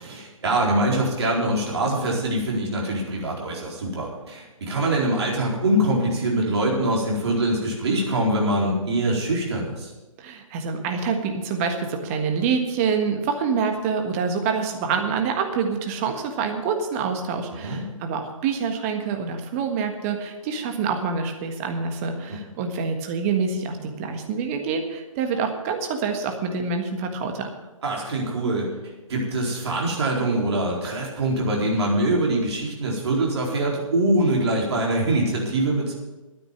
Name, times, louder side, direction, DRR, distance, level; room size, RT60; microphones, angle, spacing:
voice 1, 0.0-9.9 17.5-17.8 27.8-28.7 29.1-35.9, right 1 dB, 50° right, -2 dB, 4.3 m, -23 dB
voice 2, 10.2-27.5, right 5 dB, 25° right, 5 dB, 1.6 m, -26 dB
12.5 x 9.5 x 7.1 m, 1.1 s
figure-of-eight pair, 135°, 18 cm